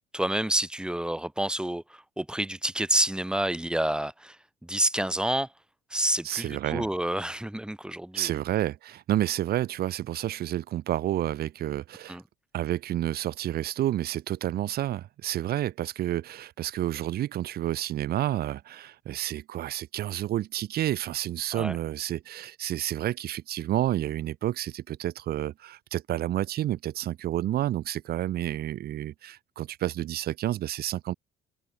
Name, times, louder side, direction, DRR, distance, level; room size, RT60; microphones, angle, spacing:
voice 1, 0.1-5.5 5.9-8.3 12.1-12.2 21.5-21.8, right 1 dB, 5° right, 3.6 m, -29 dB
voice 2, 6.2-6.9 8.1-12.2 12.5-31.1, right 13 dB, 65° right, 3.7 m, -30 dB
cardioid pair, 110°, 17 cm